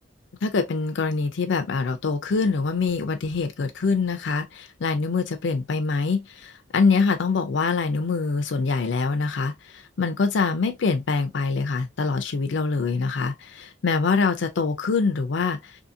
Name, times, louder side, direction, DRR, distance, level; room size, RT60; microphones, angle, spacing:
voice 1, 0.4-15.8, left 4 dB, 70° left, 0.5 m, -24 dB
2.7 x 2.7 x 2.5 m
head